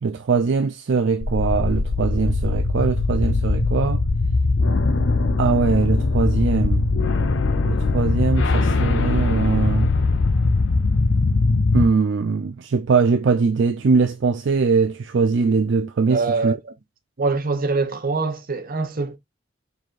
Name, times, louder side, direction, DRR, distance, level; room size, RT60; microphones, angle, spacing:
voice 1, 0.0-4.0 5.4-6.9 7.6-9.9 11.7-16.5, right 5 dB, 65° right, 0.4 m, -21 dB
sound 1, 1.2-11.9, left 3 dB, 85° left, 0.7 m, -20 dB
voice 2, 16.1-16.7 17.2-19.2, right 3 dB, 50° right, 0.8 m, -24 dB
4.7 x 3.9 x 2.4 m
head